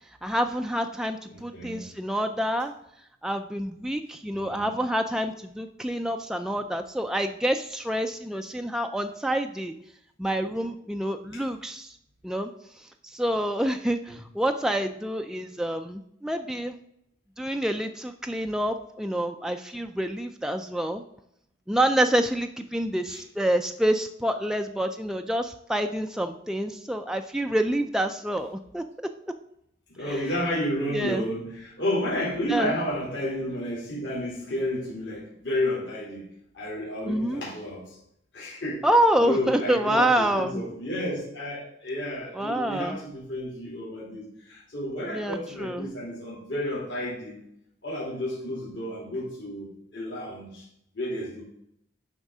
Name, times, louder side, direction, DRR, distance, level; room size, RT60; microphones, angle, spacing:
voice 1, 0.2-2.7 3.2-9.7 10.2-12.0 12.2-12.5 12.8-16.7 17.4-21.0 21.7-28.8 30.1-30.2 30.9-31.3 32.5-32.7 37.1-37.4 38.8-40.6 42.3-43.0 45.1-45.9, right 1 dB, 5° right, 5 dB, 0.3 m, -27 dB
voice 2, 1.3-1.8 4.3-4.7 14.1-14.2 23.1-23.2 29.9-36.2 36.5-38.0 38.3-38.9 39.2-47.4 47.8-50.7 50.9-51.4, left 1 dB, 65° left, -7 dB, 3.0 m, -31 dB
11.0 x 3.7 x 5.4 m, 0.75 s
head